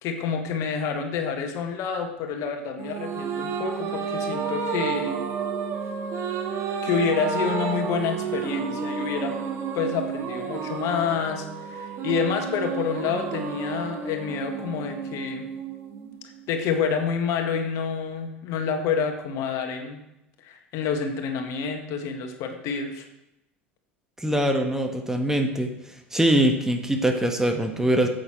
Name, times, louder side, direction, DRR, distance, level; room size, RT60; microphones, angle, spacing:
voice 1, 0.0-5.2 6.8-9.4 9.7-15.5 16.5-20.0 20.4-23.1, left 6 dB, 50° left, 5 dB, 1.6 m, -28 dB
sound 1, 2.8-16.4, right 6 dB, 40° right, 1.6 m, -31 dB
voice 2, 24.2-25.7 26.1-28.1, right 1 dB, 5° right, 4 dB, 1.4 m, -22 dB
14.0 x 8.1 x 4.5 m, 0.88 s
figure-of-eight pair, 70°, 7 cm